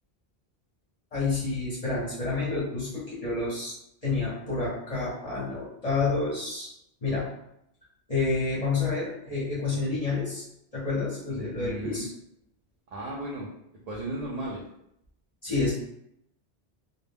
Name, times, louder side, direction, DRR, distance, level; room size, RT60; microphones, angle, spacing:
voice 1, 1.1-3.7 4.0-6.7 7.0-7.3 8.1-10.4 10.7-12.1 15.4-15.7, left 3 dB, 40° left, -7 dB, 0.8 m, -29 dB
voice 2, 11.3-12.1 12.9-13.5 13.9-14.6, right 1 dB, 55° right, -4 dB, 0.5 m, -35 dB
2.3 x 2.0 x 3.3 m, 0.76 s
omnidirectional pair, 1.1 m